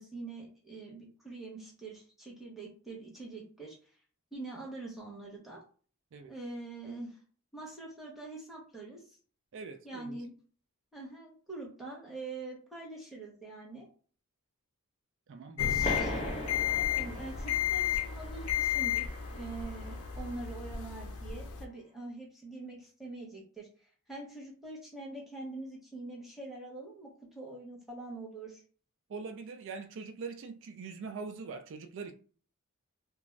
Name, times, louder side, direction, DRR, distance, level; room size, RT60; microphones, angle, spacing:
voice 1, 0.0-3.8 4.3-5.6 6.3-7.2 7.5-9.0 9.8-10.3 10.9-13.9 15.6-16.1 16.6-27.1 27.3-28.6, right 2 dB, ahead, 0.8 m, -44 dB
voice 2, 9.5-10.2 15.3-16.1 29.1-32.1, right 4 dB, 60° right, 0.4 m, -42 dB
sound 1, 15.6-21.6, left 9 dB, 80° left, 0.4 m, -33 dB
sound 2, 15.8-21.0, left 1 dB, 30° left, 0.7 m, -41 dB
2.5 x 2.3 x 3.1 m
head